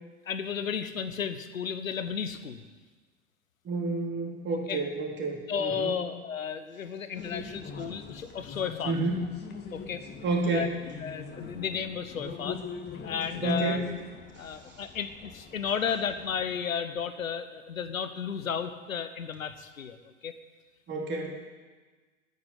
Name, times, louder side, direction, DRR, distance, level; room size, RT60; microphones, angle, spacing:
voice 1, 0.3-2.7 4.7-4.8 5.5-8.9 9.7-10.0 10.5-10.7 11.0-12.6 13.0-13.8 14.4-20.3, left 7 dB, 75° left, 10 dB, 1.3 m, -33 dB
voice 2, 3.6-6.0 8.8-9.2 10.2-10.7 13.4-13.9 14.3-14.8 20.9-21.4, right 3 dB, 25° right, -1 dB, 3.8 m, -30 dB
sound 1, 7.1-16.6, left 5 dB, 25° left, 1.9 m, -43 dB
11.0 x 9.8 x 9.5 m, 1.3 s
figure-of-eight pair, 95°, 40 cm